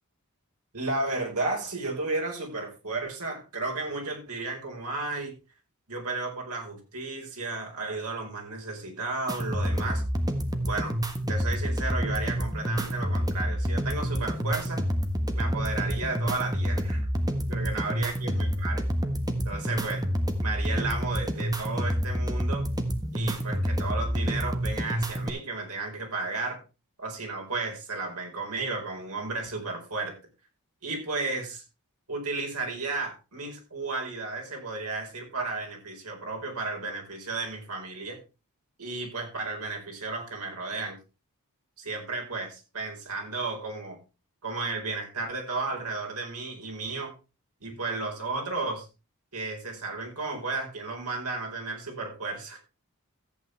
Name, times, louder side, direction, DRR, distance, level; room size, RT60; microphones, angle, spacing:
voice 1, 0.7-5.3 5.9-10.0 10.6-10.9 11.3-14.8 15.3-17.1 17.5-18.8 19.4-20.0 20.4-22.7 23.1-26.6 27.0-30.2 30.8-31.6 32.1-38.2 38.8-41.0 41.8-44.0 44.4-47.1 47.6-48.9 49.3-52.6, right 3 dB, 85° right, 1 dB, 4.6 m, -33 dB
sound 1, 9.3-25.3, equal, 15° right, 1.4 m, -28 dB
14.0 x 8.8 x 3.3 m, 0.29 s
head